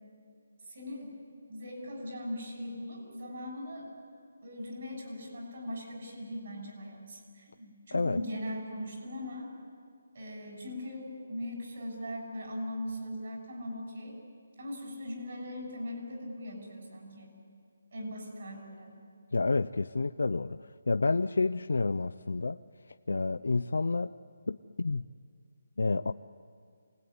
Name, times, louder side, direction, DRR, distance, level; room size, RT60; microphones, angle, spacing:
voice 1, 0.7-1.1 1.5-3.9 4.4-9.5 10.1-14.1 14.6-17.4 17.9-19.0, left 1 dB, 45° right, 1 dB, 6.7 m, -40 dB
voice 2, 19.3-20.6 20.9-22.6 23.1-24.1 24.5-25.0 25.8-26.1, left 3 dB, 75° left, 8 dB, 0.6 m, -29 dB
28.0 x 19.5 x 9.6 m, 2.2 s
hypercardioid pair, 180°, 0 cm